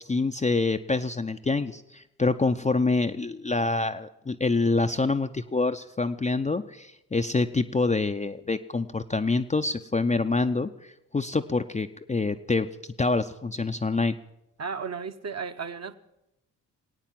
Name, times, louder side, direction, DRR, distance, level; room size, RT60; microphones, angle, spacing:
voice 1, 0.1-10.7 11.1-12.7 13.0-14.2, left 3 dB, 15° left, 0.6 m, -26 dB
voice 2, 14.6-15.9, right 5 dB, 35° right, 1.0 m, -34 dB
19.5 x 9.0 x 7.5 m
hypercardioid pair, 40°, 45 cm